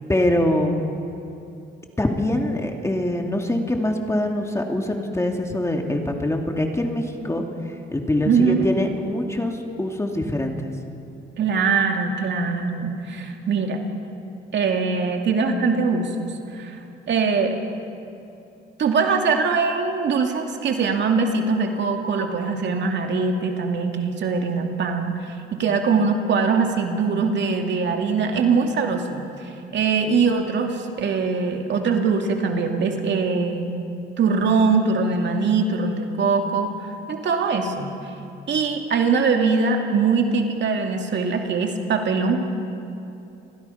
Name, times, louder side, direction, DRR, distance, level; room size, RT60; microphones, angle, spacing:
voice 1, 0.1-0.9 2.0-7.4 7.9-10.6, left 1 dB, 15° left, 2 dB, 2.7 m, -24 dB
voice 2, 8.3-8.7 11.4-13.8 14.5-16.8 17.1-17.6 18.8-33.7 34.2-37.9 38.5-42.4, right 4 dB, 65° right, 3 dB, 2.5 m, -22 dB
29.5 x 21.0 x 5.8 m, 2.7 s
cardioid pair, 90°, 20 cm